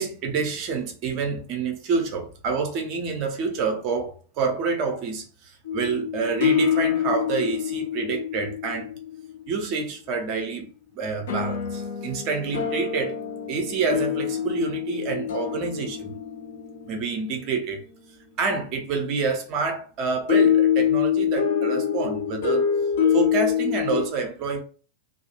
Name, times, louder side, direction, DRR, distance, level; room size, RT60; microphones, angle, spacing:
voice 1, 0.0-8.9 9.5-10.7 10.9-13.1 13.5-16.1 16.9-17.8 18.4-22.6 23.1-24.6, right 4 dB, 40° right, 0.6 m, -28 dB
sound 1, 5.7-9.5 11.3-17.5 20.3-24.1, left 8 dB, 55° left, 0.7 m, -25 dB
2.3 x 2.1 x 2.8 m
figure-of-eight pair, 90°, 0 cm